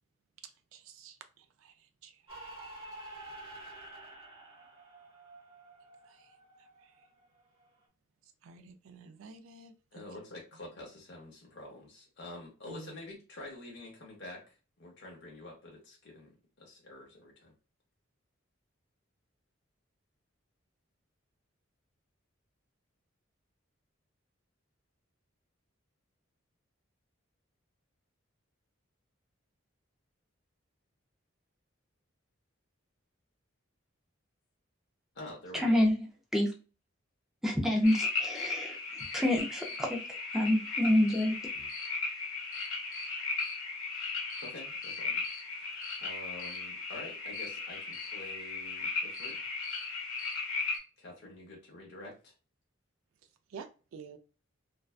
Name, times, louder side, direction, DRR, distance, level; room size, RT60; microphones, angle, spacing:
voice 1, 0.7-1.7 2.0-2.1 6.1-6.2 8.4-9.7 12.7-12.9 53.5-54.2, right 5 dB, 80° right, 0.4 m, -49 dB
sound 1, 2.3-7.9, right 2 dB, 25° right, 0.9 m, -49 dB
voice 2, 9.9-17.5 35.1-35.8 44.4-49.5 51.0-52.3, left 1 dB, 55° left, 0.7 m, -48 dB
voice 3, 35.5-36.5 37.4-38.8 39.1-40.0 40.3-41.4, left 1 dB, ahead, 0.5 m, -27 dB
sound 2, 37.8-50.8, left 4 dB, 80° left, 1.0 m, -36 dB
2.5 x 2.2 x 2.3 m
head